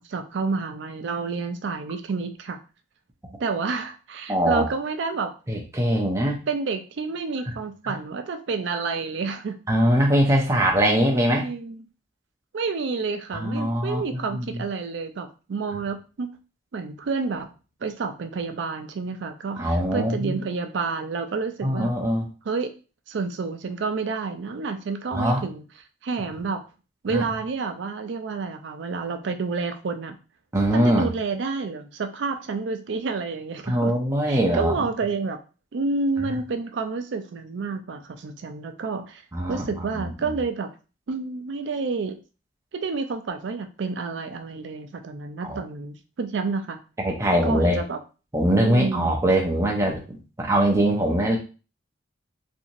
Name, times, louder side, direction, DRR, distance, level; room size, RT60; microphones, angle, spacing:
voice 1, 0.0-2.6 3.4-5.3 6.5-9.6 11.3-11.9 12.5-16.3 16.7-17.5 17.8-21.9 22.5-22.7 23.1-25.6 26.0-26.6 27.0-30.2 30.7-33.9 34.3-35.4 35.7-39.2 39.5-40.7 41.1-42.2 42.7-46.8 47.4-48.0 48.5-49.1, right 4 dB, 70° right, 7 dB, 0.4 m, -29 dB
voice 2, 4.3-4.6 5.5-6.4 7.8-8.0 9.7-11.5 13.3-14.6 19.6-20.4 21.6-22.3 25.1-25.4 27.1-27.2 30.5-31.1 33.7-34.7 39.3-40.4 45.4-45.6 47.0-47.8 48.3-51.4, right 1 dB, 15° right, 0 dB, 0.5 m, -22 dB
2.9 x 2.6 x 2.6 m, 0.34 s
head